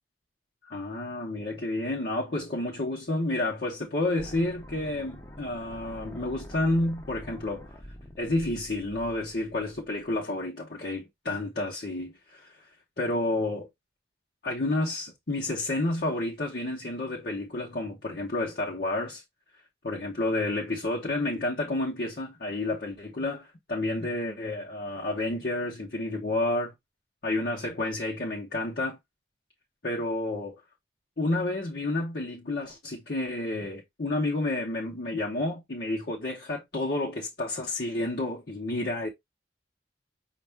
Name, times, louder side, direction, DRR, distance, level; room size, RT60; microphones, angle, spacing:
voice 1, 0.6-7.7 8.2-12.6 13.0-13.7 14.4-19.2 19.8-26.7 27.2-29.0 29.8-30.6 31.2-39.1, left 2 dB, 60° left, 1.0 m, -30 dB
sound 1, 4.2-10.2, equal, 15° left, 0.7 m, -46 dB
5.3 x 2.5 x 3.4 m
head